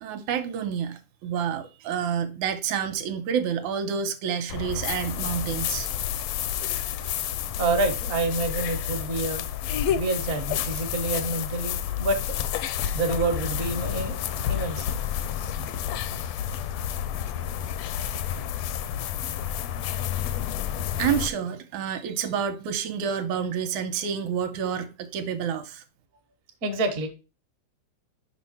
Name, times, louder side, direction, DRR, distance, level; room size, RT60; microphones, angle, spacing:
voice 1, 0.0-5.9 21.0-25.8, right 8 dB, 80° right, 2.0 m, -29 dB
sound 1, 4.5-21.3, left 10 dB, 80° left, 1.5 m, -30 dB
voice 2, 7.6-9.4 9.9-12.4 12.9-15.0 26.6-27.1, right 2 dB, 55° right, 0.9 m, -28 dB
5.9 x 5.4 x 4.2 m
omnidirectional pair, 3.6 m